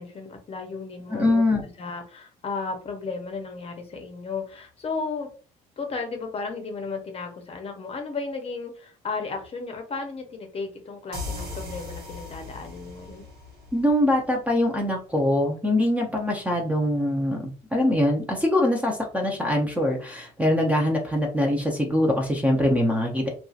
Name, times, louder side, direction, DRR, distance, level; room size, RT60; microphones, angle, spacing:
voice 1, 0.0-1.4 1.8-5.3 5.8-13.2, left 4 dB, 35° left, 4 dB, 0.7 m, -34 dB
voice 2, 1.1-1.6 13.7-23.3, left 1 dB, 10° right, 1 dB, 0.6 m, -23 dB
sound 1, 11.1-14.6, left 2 dB, 75° right, 1.0 m, -38 dB
2.7 x 2.3 x 2.4 m, 0.38 s
cardioid pair, 110°, 17 cm